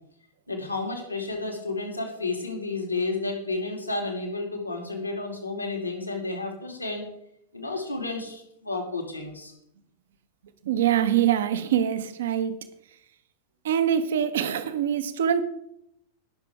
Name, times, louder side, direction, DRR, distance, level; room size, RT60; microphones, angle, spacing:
voice 1, 0.5-7.0 7.5-9.5, left 3 dB, 85° left, 2 dB, 2.4 m, -31 dB
voice 2, 10.6-12.5 13.6-15.4, right 9 dB, 60° right, 12 dB, 1.0 m, -24 dB
20.0 x 6.9 x 3.5 m, 0.76 s
figure-of-eight pair, 90°, 0 cm